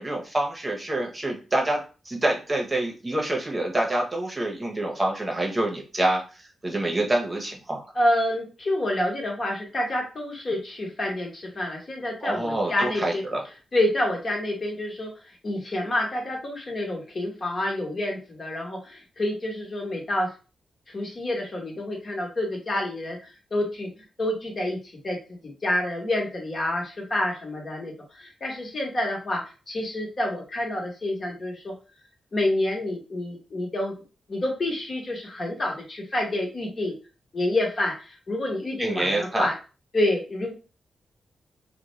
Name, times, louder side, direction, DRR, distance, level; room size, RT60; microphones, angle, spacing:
voice 1, 0.0-7.8 12.2-13.4 38.8-39.5, right 1 dB, 25° right, 0 dB, 0.8 m, -27 dB
voice 2, 7.9-13.2 13.7-15.1 15.4-20.3 20.9-23.9 24.2-24.8 25.0-29.4 29.7-31.7 32.3-33.9 34.3-36.9 37.3-39.5 39.9-40.5, left 1 dB, 45° left, -1 dB, 1.1 m, -28 dB
2.4 x 2.1 x 3.1 m, 0.33 s
cardioid pair, 60°, 0 cm